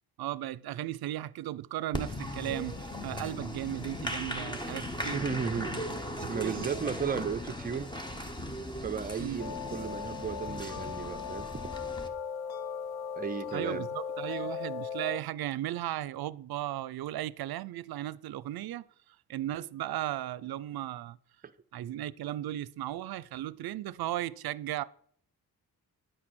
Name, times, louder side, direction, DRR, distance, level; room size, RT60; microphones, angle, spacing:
voice 1, 0.2-5.2 5.7-5.9 6.2-6.7 9.2-9.4 13.5-18.8 19.3-21.2 21.7-24.8, right 13 dB, 70° right, 0.5 m, -36 dB
Applause, 1.9-12.1, left 1 dB, 10° left, 0.9 m, -38 dB
voice 2, 5.1-5.8 6.3-7.9 8.8-11.5 13.2-13.9, right 6 dB, 25° right, 0.5 m, -34 dB
sound 1, 9.4-15.2, left 7 dB, 70° left, 0.8 m, -38 dB
10.0 x 8.7 x 6.2 m
wide cardioid pair, 180°, 38 cm